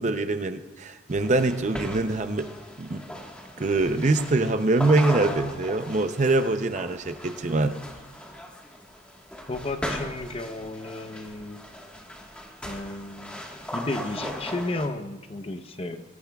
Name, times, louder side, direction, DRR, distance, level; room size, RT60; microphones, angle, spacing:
voice 1, 0.0-2.5 2.8-3.0 3.6-7.8, right 2 dB, 40° right, 9 dB, 0.6 m, -24 dB
sound 1, 1.1-14.9, equal, 5° left, 1.4 m, -38 dB
voice 2, 9.5-11.6 12.6-13.4 13.7-16.0, left 2 dB, 30° left, 7 dB, 0.8 m, -33 dB
23.5 x 17.5 x 2.3 m, 1.2 s
head